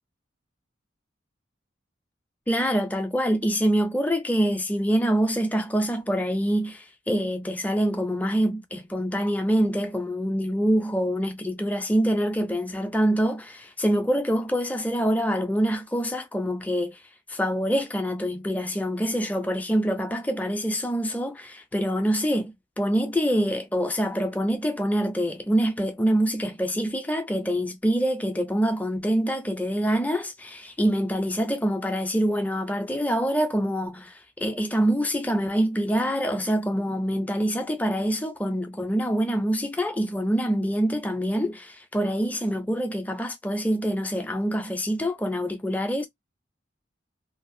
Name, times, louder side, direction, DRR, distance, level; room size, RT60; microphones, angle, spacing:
voice 1, 2.5-17.0 17.3-46.1, equal, 10° left, 0.4 m, -25 dB
2.6 x 2.0 x 2.6 m
head